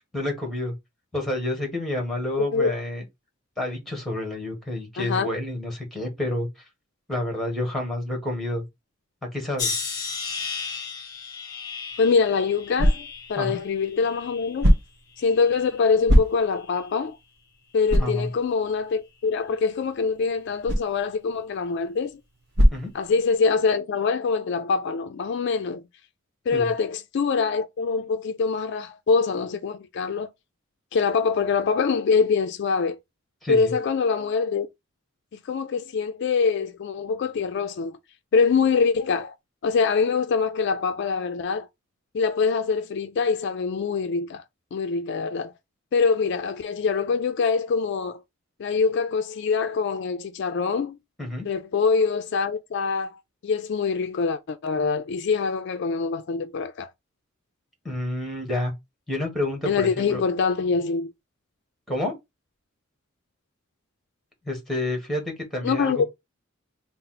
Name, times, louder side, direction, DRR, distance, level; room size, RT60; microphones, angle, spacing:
voice 1, 0.1-0.7 1.1-3.0 3.6-6.5 7.1-8.6 9.3-9.7 13.4-13.6 18.0-18.3 22.7-22.9 26.5-26.7 33.4-33.7 51.2-51.5 57.8-58.7 59.1-60.2 61.9-62.1 64.4-66.1, left 1 dB, ahead, 1.4 m, -29 dB
voice 2, 2.4-2.7 5.0-5.3 12.0-14.7 15.2-17.2 17.7-22.2 22.9-25.8 26.5-30.3 30.9-33.0 33.5-34.7 35.5-38.0 38.3-39.3 39.6-41.7 42.1-44.4 44.7-45.5 45.9-48.2 48.6-51.0 51.4-56.9 59.7-61.1 65.6-66.0, left 5 dB, 60° left, 0.4 m, -24 dB
sound 1, 9.6-14.7 15.2-15.9 16.6-16.9, left 5 dB, 20° left, 0.9 m, -35 dB
sound 2, 11.9-23.6, equal, 60° right, 1.0 m, -27 dB
4.1 x 2.0 x 4.0 m
head